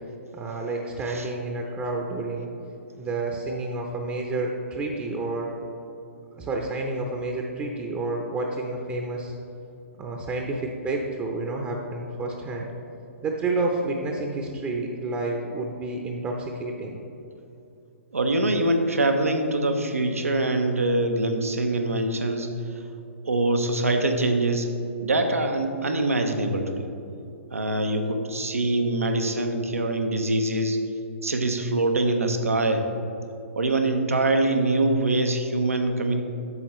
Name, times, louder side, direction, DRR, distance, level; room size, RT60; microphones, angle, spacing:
voice 1, 0.3-2.5 3.0-5.5 6.3-9.3 10.0-12.7 13.2-17.0, right 2 dB, 20° right, 1 dB, 0.7 m, -29 dB
voice 2, 18.1-22.5 23.2-24.7 25.0-26.9 27.5-30.8 31.2-32.8 33.6-36.2, right 2 dB, 85° right, 5 dB, 0.9 m, -24 dB
10.5 x 7.2 x 3.1 m, 2.8 s
figure-of-eight pair, 125°, 8 cm